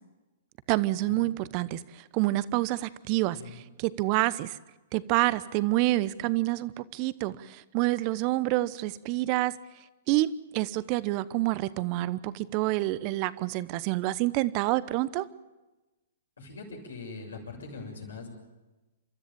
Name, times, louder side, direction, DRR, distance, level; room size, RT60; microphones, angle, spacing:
voice 1, 0.7-4.6 4.9-9.5 10.1-15.3, right 17 dB, 40° right, 17 dB, 0.9 m, -28 dB
voice 2, 16.4-18.3, left 4 dB, 80° left, 1 dB, 6.9 m, -42 dB
29.5 x 13.5 x 8.7 m, 1.1 s
hypercardioid pair, 120°, 0 cm